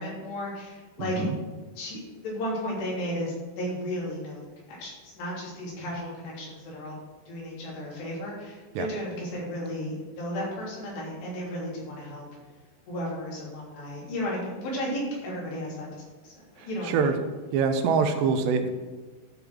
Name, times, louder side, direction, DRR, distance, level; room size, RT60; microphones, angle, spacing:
voice 1, 0.0-1.3 1.8-4.4 4.7-7.0 7.3-12.2 12.9-17.0, left 1 dB, 80° left, -4 dB, 5.4 m, -34 dB
voice 2, 1.0-1.4 8.8-8.9 16.6-17.2 17.5-18.7, right 5 dB, 85° right, 7 dB, 3.2 m, -25 dB
13.0 x 5.3 x 6.2 m, 1.3 s
omnidirectional pair, 4.8 m